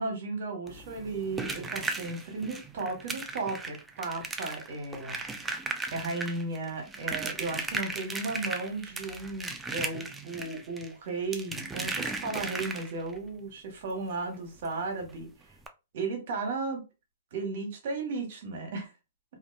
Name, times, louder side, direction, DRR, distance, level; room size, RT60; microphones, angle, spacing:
voice 1, 0.0-5.3 5.9-15.5 15.9-16.8 17.3-18.9, right 3 dB, 60° right, 1.1 m, -35 dB
sound 1, 0.7-13.2 14.6-14.7 15.0-15.2 15.6-15.7, right 3 dB, 10° right, 0.3 m, -37 dB
2.5 x 2.3 x 2.2 m
hypercardioid pair, 140°, 0 cm